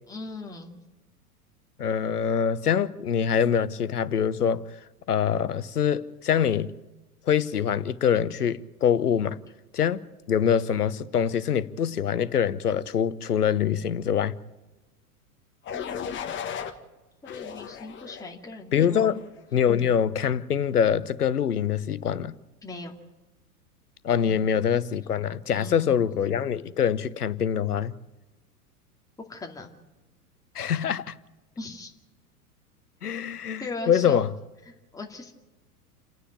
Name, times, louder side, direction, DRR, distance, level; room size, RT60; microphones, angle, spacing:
voice 1, 0.1-0.7 15.7-16.3 17.2-19.1 22.6-23.0 25.5-26.0 29.3-29.7 31.6-31.9 33.6-34.2 34.9-35.3, left 2 dB, 10° left, 2.3 m, -39 dB
voice 2, 1.8-4.7 5.1-6.8 7.3-9.4 9.7-10.0 10.3-14.3 18.7-19.2 19.5-22.3 24.0-27.9 30.5-31.1 33.0-34.3, left 8 dB, 75° left, 1.0 m, -24 dB
sound 1, 15.7-16.7 17.3-18.3 18.9-19.3, left 8 dB, 25° left, 1.7 m, -36 dB
29.0 x 9.8 x 9.3 m
figure-of-eight pair, 95°, 45 cm